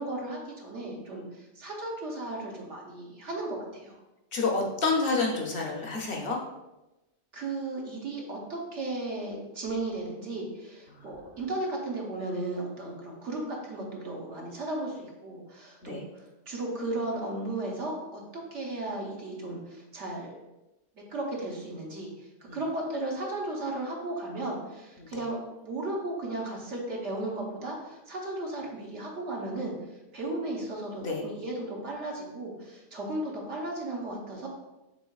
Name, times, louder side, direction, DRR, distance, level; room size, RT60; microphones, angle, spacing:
voice 1, 0.0-4.0 7.3-20.3 21.1-29.7 30.1-34.5, right 2 dB, 70° right, -2 dB, 1.3 m, -35 dB
voice 2, 4.3-6.4 15.8-16.0 22.5-22.6 25.0-25.1 31.0-31.2, left 3 dB, 55° left, 0 dB, 0.8 m, -28 dB
6.1 x 3.6 x 2.3 m, 0.99 s
omnidirectional pair, 1.2 m